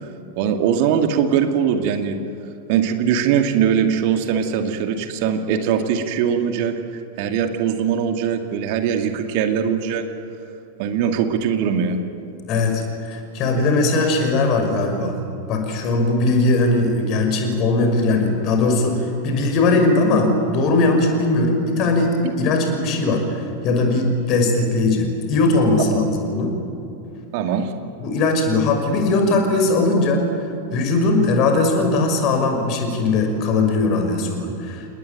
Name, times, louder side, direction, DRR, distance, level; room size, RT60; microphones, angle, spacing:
voice 1, 0.4-2.2 2.7-6.7 7.2-10.1 10.8-12.0 27.3-27.7, right 8 dB, 45° right, 6 dB, 2.2 m, -21 dB
voice 2, 12.4-15.2 15.5-26.6 28.0-30.3 30.7-34.9, left 2 dB, 40° left, 4 dB, 6.0 m, -19 dB
29.5 x 19.5 x 9.1 m, 2.9 s
figure-of-eight pair, 90°, 0 cm